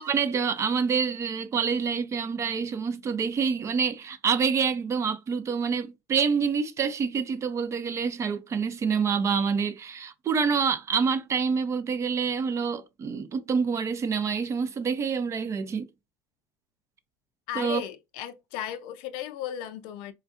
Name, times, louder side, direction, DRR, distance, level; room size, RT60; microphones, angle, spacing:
voice 1, 0.0-15.9 17.6-17.8, right 6 dB, 35° right, 0.6 m, -27 dB
voice 2, 17.5-20.1, left 11 dB, 75° left, 0.4 m, -35 dB
4.4 x 2.4 x 2.4 m
supercardioid pair, 90°, 8 cm